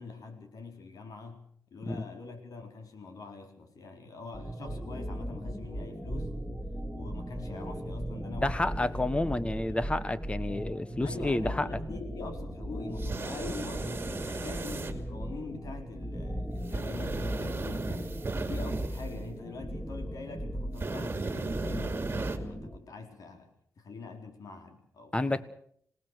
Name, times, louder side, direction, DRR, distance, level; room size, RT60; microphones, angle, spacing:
voice 1, 0.0-6.4 6.9-9.0 9.2-9.9 11.0-25.4, left 4 dB, 75° left, 6 dB, 4.1 m, -44 dB
sound 1, 4.3-22.8, equal, ahead, 2.3 m, -37 dB
voice 2, 8.4-11.7 25.1-25.4, left 2 dB, 20° left, 14 dB, 1.3 m, -30 dB
sound 2, 13.0-14.9 16.7-19.0 20.8-22.4, right 3 dB, 35° right, 2.6 m, -35 dB
27.0 x 19.0 x 6.3 m, 0.64 s
cardioid pair, 100°, 6 cm